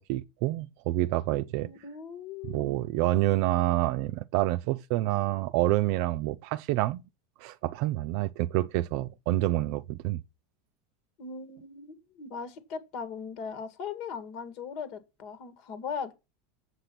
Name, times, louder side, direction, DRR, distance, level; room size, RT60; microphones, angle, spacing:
voice 1, 0.0-1.7 2.5-7.0 7.4-10.2, right 16 dB, 60° right, 0.5 m, -28 dB
voice 2, 1.6-2.8 11.2-16.1, left 6 dB, 55° left, 2.0 m, -39 dB
8.0 x 6.7 x 6.0 m
supercardioid pair, 135°, 0 cm